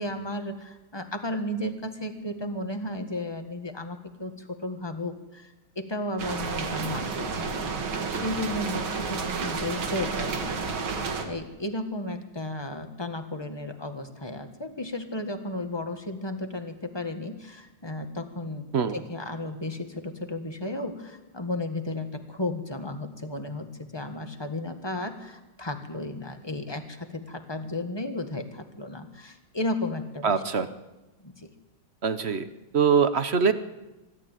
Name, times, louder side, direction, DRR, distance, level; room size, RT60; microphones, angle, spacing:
voice 1, 0.0-7.8 8.1-10.6 11.2-18.7 18.9-30.6 31.2-31.5, left 1 dB, 15° left, 6 dB, 1.5 m, -34 dB
sound 1, 6.2-11.2, right 4 dB, 75° right, 2.7 m, -31 dB
voice 2, 30.2-30.7 32.0-32.5 32.7-33.5, right 6 dB, 50° right, 12 dB, 0.8 m, -23 dB
24.5 x 12.5 x 9.2 m, 1.0 s
omnidirectional pair, 2.2 m